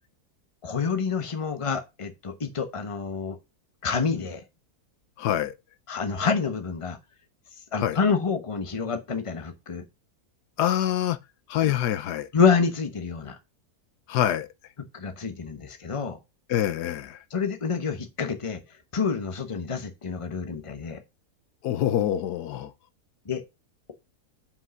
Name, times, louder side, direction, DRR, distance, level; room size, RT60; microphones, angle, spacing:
voice 1, 0.6-3.4 3.8-4.4 5.9-7.0 7.7-9.8 11.6-11.7 12.3-13.4 14.9-16.2 17.3-18.6 18.9-21.0 23.2-23.4, left 5 dB, 25° left, 1.0 m, -27 dB
voice 2, 5.2-5.5 7.8-8.0 10.6-11.2 11.5-12.3 14.1-14.5 16.5-17.2 21.6-22.7, left 11 dB, 90° left, 1.3 m, -25 dB
5.5 x 5.4 x 6.3 m
omnidirectional pair, 1.7 m